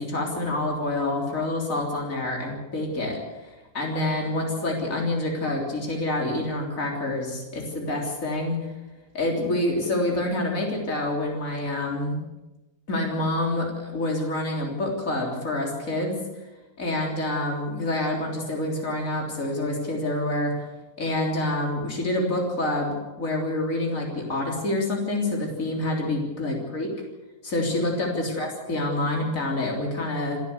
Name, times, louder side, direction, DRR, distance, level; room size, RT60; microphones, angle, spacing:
voice 1, 0.0-3.5 3.7-8.6 9.1-12.2 12.9-16.2 16.8-20.5 21.0-26.9 27.4-30.4, left 1 dB, 65° left, 0 dB, 4.0 m, -27 dB
28.0 x 11.5 x 8.2 m, 1.1 s
omnidirectional pair, 1.5 m